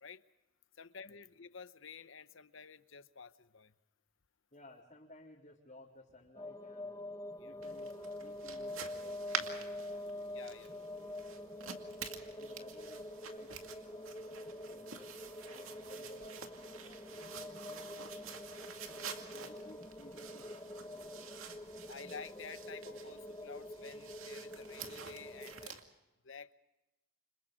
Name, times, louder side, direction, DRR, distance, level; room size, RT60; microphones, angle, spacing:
voice 1, 0.7-3.7 7.4-7.6 10.3-10.8 16.0-16.1 18.2-18.4 19.1-19.6 21.9-25.8 26.2-26.5, left 5 dB, 65° left, 12 dB, 1.0 m, -51 dB
voice 2, 4.5-7.0 7.4-10.2 11.2-11.9 12.2-15.1 15.5-17.6 19.2-21.3, left 1 dB, 35° left, -6 dB, 3.7 m, -59 dB
sound 1, 6.4-25.7, left 1 dB, 15° left, 1.2 m, -46 dB
sound 2, 7.6-25.8, right 6 dB, 80° right, 2.3 m, -48 dB
30.0 x 26.5 x 3.8 m, 0.95 s
head